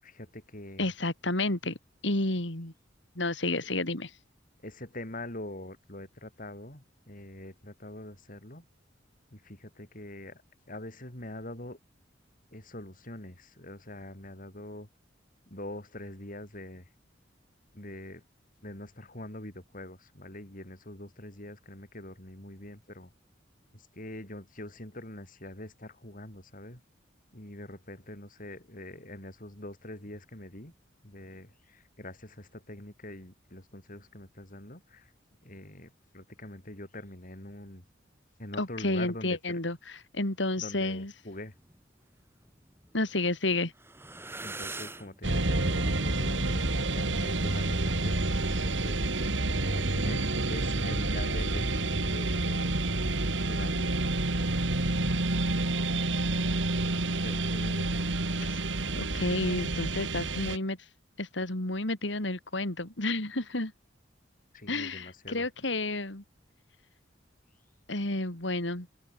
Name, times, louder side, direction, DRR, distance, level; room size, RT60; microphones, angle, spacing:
voice 1, 0.0-0.9 3.6-3.7 4.6-8.6 9.3-10.4 10.7-11.8 12.5-14.9 15.5-16.8 17.7-18.2 18.6-23.1 23.7-26.8 27.3-30.7 31.0-35.1 35.4-37.8 38.4-39.4 40.6-41.5 44.4-52.7 53.3-53.9 57.2-58.0 64.5-65.5, left 1 dB, 45° left, 7.4 m, -44 dB
voice 2, 0.8-1.8 2.0-2.7 3.2-4.1 38.6-39.8 40.1-41.1 42.9-43.7 58.4-58.6 58.9-60.8 61.2-63.7 64.7-66.2 67.9-68.9, left 2 dB, 70° left, 3.4 m, -31 dB
sound 1, 41.4-41.8 42.4-43.4 43.7-49.9, right 2 dB, 15° right, 5.2 m, -45 dB
sound 2, 45.2-60.6, right 2 dB, 70° right, 2.6 m, -29 dB
open air
head